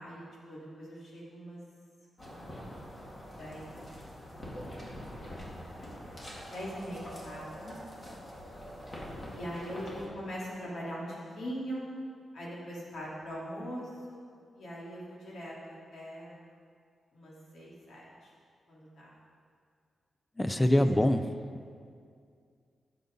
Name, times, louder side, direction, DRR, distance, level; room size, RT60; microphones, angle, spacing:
voice 1, 0.0-1.6 3.4-3.8 4.1-5.4 6.5-7.8 9.3-11.9 12.3-14.2 14.5-15.5 15.9-16.4 17.1-18.3 18.7-19.1 20.5-21.0, equal, 70° left, -6 dB, 3.2 m, -42 dB
sound 1, 2.2-10.1, equal, 30° left, 2.2 m, -44 dB
voice 2, 20.4-21.2, left 1 dB, 10° left, 10 dB, 0.5 m, -24 dB
13.0 x 7.0 x 5.4 m, 2.2 s
wide cardioid pair, 145°, 0 cm